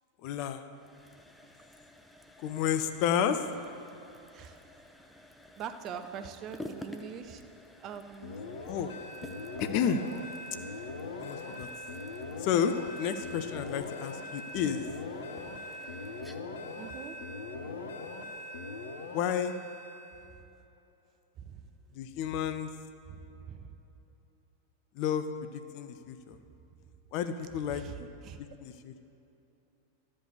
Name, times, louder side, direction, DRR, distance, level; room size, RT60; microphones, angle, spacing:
voice 1, 0.2-0.6 2.4-3.5 8.7-9.0 9.6-10.0 11.2-11.7 12.4-14.8 19.1-19.5 21.9-22.7 24.9-26.4 27.1-27.8 28.4-29.0, left 8 dB, 45° left, 9 dB, 0.5 m, -31 dB
sound 1, 0.7-18.4, left 1 dB, 5° left, 0.6 m, -51 dB
voice 2, 4.3-4.8 5.6-7.4 7.8-8.7 16.8-17.2 21.4-21.6 23.1-23.8 27.7-28.4, right 8 dB, 35° right, 9 dB, 0.6 m, -43 dB
sound 2, 8.2-20.3, left 2 dB, 60° left, 0.9 m, -41 dB
12.0 x 5.3 x 7.0 m, 2.9 s
figure-of-eight pair, 90°, 0 cm